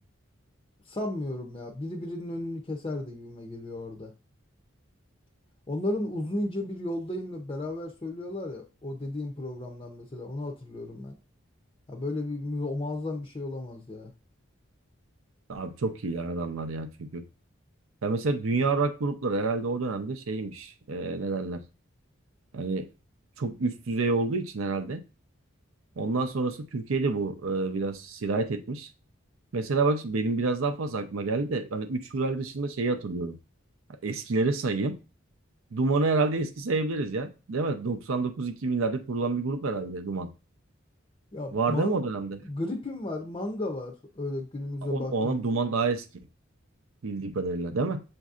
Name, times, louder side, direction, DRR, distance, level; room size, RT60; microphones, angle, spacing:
voice 1, 0.9-4.1 5.7-11.1 11.9-14.1 41.3-42.0 42.4-45.3, left 1 dB, 25° left, 1 dB, 0.5 m, -34 dB
voice 2, 15.5-17.2 18.0-21.6 22.5-22.9 23.4-25.0 26.0-28.9 29.5-33.4 34.0-35.0 35.7-40.3 41.5-42.4 44.9-46.0 47.0-48.0, right 3 dB, 85° right, 8 dB, 0.6 m, -28 dB
7.2 x 2.6 x 2.4 m, 0.32 s
head